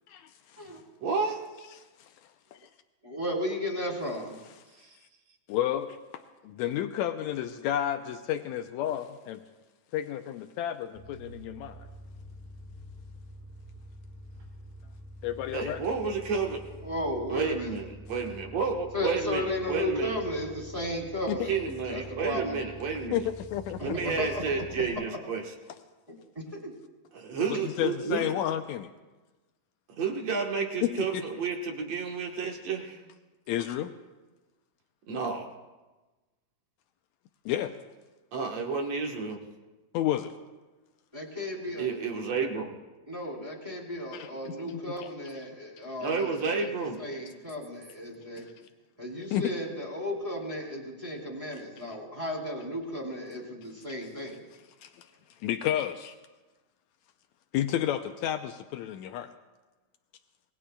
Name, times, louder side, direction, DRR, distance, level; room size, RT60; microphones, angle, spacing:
voice 1, 1.0-1.4 15.5-16.6 17.3-20.2 21.5-23.3 23.8-25.4 27.1-28.3 30.0-33.0 35.1-35.5 38.3-39.4 41.8-42.8 46.0-47.0, right 5 dB, 60° right, 1 dB, 2.3 m, -31 dB
voice 2, 3.0-4.4 16.7-17.7 18.9-21.6 21.9-22.6 23.8-24.4 26.5-26.7 41.1-41.9 43.1-46.3 47.0-48.4 49.0-54.4, left 1 dB, 10° right, -3 dB, 3.1 m, -34 dB
voice 3, 5.5-9.4 9.9-11.8 15.2-15.8 21.3-21.4 23.1-24.1 27.5-28.9 30.8-31.2 33.5-33.9 37.5-37.8 39.9-40.3 44.1-44.8 48.4-48.5 49.3-49.5 54.8-55.1 55.4-56.1 57.5-59.3, left 11 dB, 85° left, 7 dB, 1.6 m, -31 dB
sound 1, 11.0-24.9, equal, 75° right, 6.6 m, -47 dB
26.5 x 20.0 x 2.3 m, 1.2 s
omnidirectional pair, 3.9 m